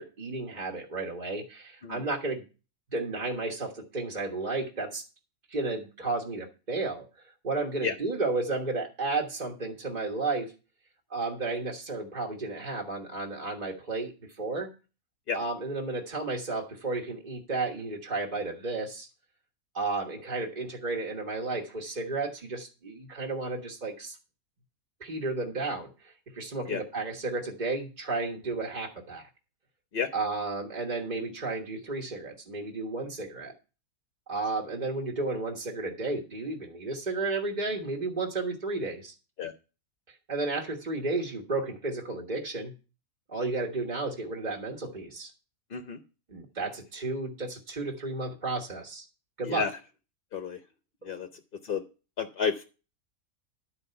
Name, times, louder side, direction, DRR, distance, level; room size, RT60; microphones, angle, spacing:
voice 1, 0.0-2.4 2.9-5.0 5.5-10.5 11.1-14.7 15.3-19.1 19.7-24.2 25.0-29.3 30.1-33.5 34.3-39.1 40.1-42.7 43.3-45.3 46.3-49.1 49.4-49.7 51.0-51.1, right 3 dB, 30° right, -1 dB, 1.5 m, -33 dB
voice 2, 52.2-52.7, left 6 dB, 45° left, 7 dB, 0.8 m, -30 dB
11.5 x 4.8 x 6.7 m, 0.33 s
omnidirectional pair, 1.5 m